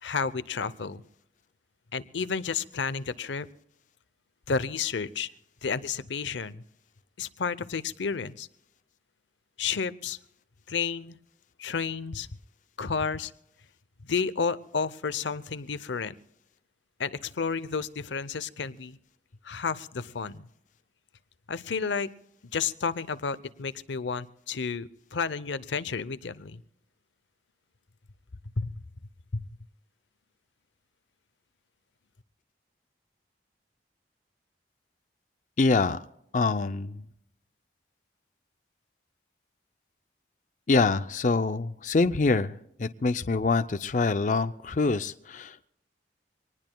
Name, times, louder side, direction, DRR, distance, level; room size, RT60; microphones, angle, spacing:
voice 1, 0.0-1.0 1.9-3.5 4.5-5.3 5.6-6.6 7.2-8.5 9.6-10.2 10.7-11.2 11.6-12.3 12.8-13.3 14.0-16.1 17.0-19.0 19.4-20.5 21.5-22.1 22.5-26.6 28.6-28.7 29.3-29.5, left 5 dB, 85° left, 15 dB, 0.7 m, -31 dB
voice 2, 35.6-36.0 36.3-37.0 40.7-45.7, left 3 dB, 45° left, 10 dB, 0.5 m, -25 dB
25.0 x 19.5 x 2.3 m, 0.78 s
head